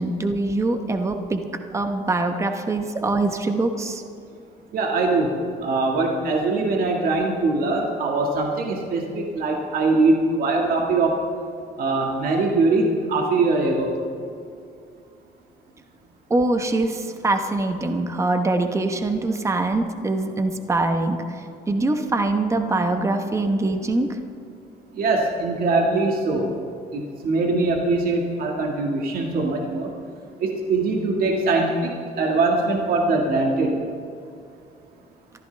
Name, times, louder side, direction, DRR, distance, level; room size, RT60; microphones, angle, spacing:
voice 1, 0.0-1.5 1.7-4.0 16.3-24.2, right 2 dB, 15° right, 6 dB, 1.1 m, -23 dB
voice 2, 4.7-11.2 11.8-14.0 24.9-26.5 26.9-29.9 30.4-33.7, right 3 dB, 60° right, 0 dB, 1.9 m, -22 dB
23.0 x 14.5 x 3.4 m, 2.5 s
cardioid pair, 110°, 17 cm